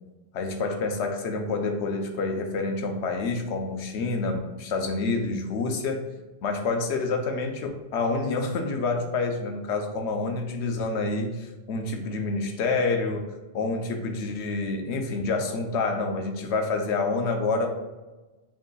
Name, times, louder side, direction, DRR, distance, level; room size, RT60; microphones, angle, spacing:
voice 1, 0.3-6.0 6.4-13.3 13.5-17.7, left 3 dB, 80° left, 4 dB, 0.9 m, -28 dB
6.6 x 3.2 x 2.2 m, 1.1 s
omnidirectional pair, 1.1 m